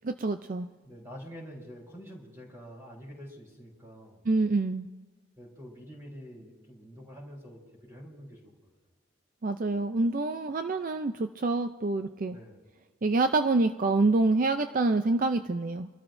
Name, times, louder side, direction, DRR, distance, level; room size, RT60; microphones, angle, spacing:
voice 1, 0.0-0.7 4.3-4.9 9.4-12.4 13.0-15.9, right 3 dB, 40° right, 8 dB, 0.4 m, -26 dB
voice 2, 0.8-4.2 5.4-8.5 12.3-12.6, equal, 15° right, -3 dB, 4.2 m, -46 dB
26.5 x 13.0 x 2.6 m, 1.3 s
head